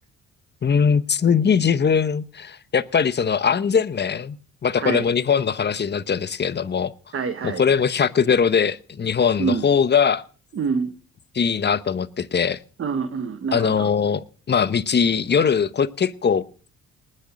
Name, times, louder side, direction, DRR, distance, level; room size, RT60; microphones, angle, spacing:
voice 1, 0.6-4.4 4.6-6.9 7.4-10.2 11.3-12.6 13.5-16.4, left 6 dB, 35° left, 0.9 m, -21 dB
voice 2, 7.1-7.6 9.4-9.7 10.5-10.9 12.8-13.9, right 5 dB, 45° right, 1.4 m, -26 dB
19.5 x 6.6 x 7.5 m
cardioid pair, 90°, 30 cm